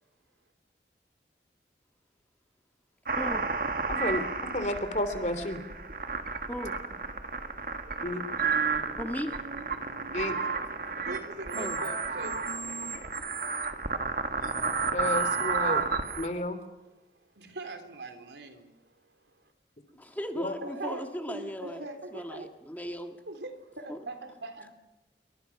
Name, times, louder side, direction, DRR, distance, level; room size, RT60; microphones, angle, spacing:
voice 1, 3.1-3.5 6.5-6.8 9.0-9.3 11.5-11.8 15.2-15.3 19.9-21.8 22.1-23.2 23.9-24.0, equal, 10° left, 5 dB, 1.7 m, -37 dB
sound 1, 3.1-16.3, right 4 dB, 50° right, 1.8 m, -32 dB
voice 2, 3.9-5.6 8.0-8.2 10.1-10.4 14.9-15.8 16.2-16.6 20.3-20.5, left 1 dB, 40° left, 9 dB, 3.1 m, -31 dB
voice 3, 11.0-12.4 13.1-14.3 17.3-19.5 20.6-22.5 23.3-24.7, right 2 dB, 80° right, 6 dB, 3.4 m, -42 dB
27.5 x 24.5 x 6.0 m, 1.0 s
head